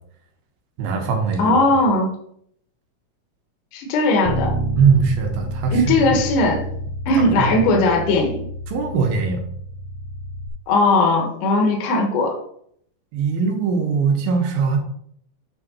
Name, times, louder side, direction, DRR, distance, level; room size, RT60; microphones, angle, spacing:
voice 1, 0.8-1.6 4.7-6.2 7.1-7.6 8.7-9.5 13.1-14.8, right 5 dB, 90° right, 3 dB, 3.0 m, -21 dB
voice 2, 1.4-2.1 3.7-4.5 5.7-6.7 7.1-8.4 10.7-12.3, left 2 dB, 70° left, 1 dB, 2.7 m, -18 dB
Bass guitar, 4.3-10.5, right 1 dB, 60° right, 1.9 m, -29 dB
8.0 x 5.5 x 4.3 m, 0.68 s
omnidirectional pair, 4.1 m